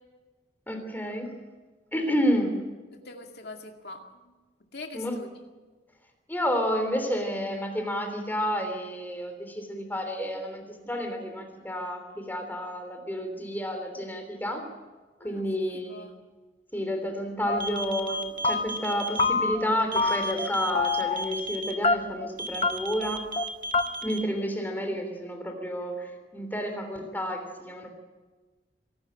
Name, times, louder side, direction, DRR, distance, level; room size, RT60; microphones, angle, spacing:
voice 1, 0.7-1.3 1.9-2.6 4.9-5.1 6.3-14.6 15.2-16.1 16.7-23.2 24.0-27.9, equal, 10° left, 5 dB, 3.2 m, -30 dB
voice 2, 2.9-4.0 4.7-5.3 15.2-15.4 15.7-16.2, left 3 dB, 65° left, 3 dB, 2.2 m, -43 dB
sound 1, 17.5-17.8 18.1-18.9 19.2-19.7 20.0-20.5 20.8-21.3 21.8-22.3 22.6-22.7 23.0-23.1 23.4-23.5 23.7-23.8, left 4 dB, 35° left, 0.8 m, -26 dB
sound 2, 17.6-19.2 19.9-21.7 22.4-24.2, right 2 dB, 50° right, 1.7 m, -34 dB
25.0 x 12.0 x 8.9 m, 1.3 s
head